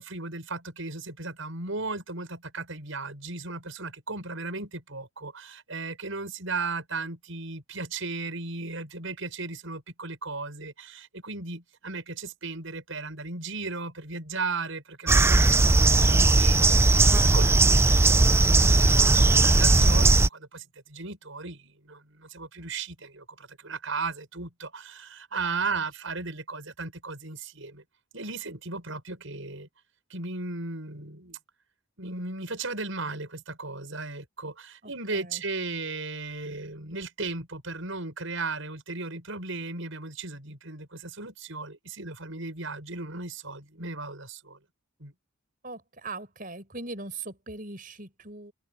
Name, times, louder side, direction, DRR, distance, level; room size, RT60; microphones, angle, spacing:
voice 1, 0.0-18.0 18.5-27.8 28.1-29.7 30.1-31.4 32.0-44.6 45.0-45.1, right 3 dB, 70° right, 6.1 m, -36 dB
sound 1, 15.1-20.3, right 2 dB, 10° right, 0.3 m, -18 dB
voice 2, 15.6-16.5 25.7-25.8 34.8-35.4 45.6-48.5, right 3 dB, 40° right, 6.6 m, -41 dB
head